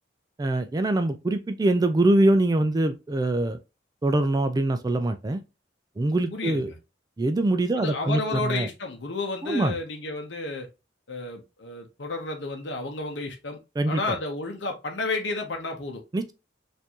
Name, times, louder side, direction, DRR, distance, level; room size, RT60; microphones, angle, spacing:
voice 1, 0.4-3.6 4.0-5.4 6.0-6.7 7.2-8.7 9.4-9.8 13.8-14.2 16.1-16.3, right 2 dB, 20° right, 0.3 m, -23 dB
voice 2, 6.3-6.7 7.8-10.7 11.1-13.6 13.9-16.0, left 3 dB, 75° left, 0.8 m, -31 dB
4.4 x 2.6 x 2.8 m
head